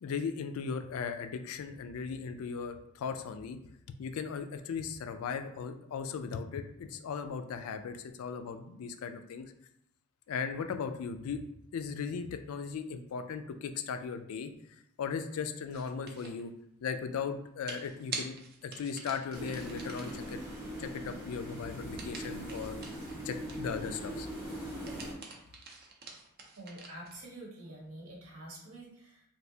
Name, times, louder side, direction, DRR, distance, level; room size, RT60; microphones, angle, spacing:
voice 1, 0.0-3.6 3.9-9.5 10.3-11.4 11.7-14.5 15.0-16.5 16.8-18.3 18.6-20.4 20.8-22.8 23.2-24.3, left 6 dB, 70° left, 8 dB, 0.3 m, -37 dB
sound 1, 15.7-16.4 17.7-20.3 22.0-23.7 24.7-27.2, right 4 dB, 45° right, 0.5 m, -45 dB
sound 2, 19.3-25.1, equal, 10° right, 0.7 m, -41 dB
voice 2, 26.6-29.2, right 1 dB, 65° right, -1 dB, 0.9 m, -47 dB
3.2 x 2.6 x 2.7 m, 0.76 s
head